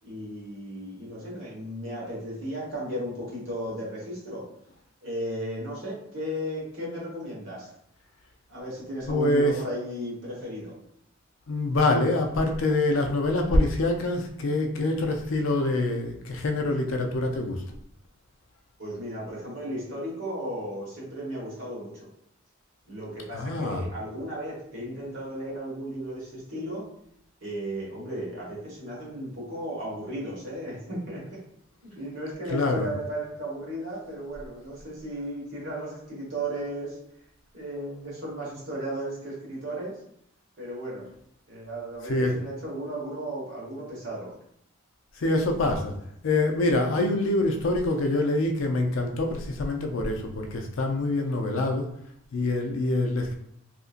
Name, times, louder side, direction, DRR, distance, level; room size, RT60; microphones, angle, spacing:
voice 1, 0.0-4.5 5.0-7.7 8.5-10.8 18.8-22.1 22.8-26.9 27.4-31.4 31.8-37.0 37.5-40.0 40.6-41.1 41.5-44.3, right 1 dB, 65° right, -6 dB, 1.3 m, -35 dB
voice 2, 9.1-9.5 11.5-17.6 23.3-23.8 32.5-32.9 42.1-42.3 45.2-46.0 46.2-51.9 52.3-53.3, left 2 dB, 70° left, 4 dB, 0.4 m, -25 dB
2.8 x 2.5 x 2.4 m, 0.73 s
head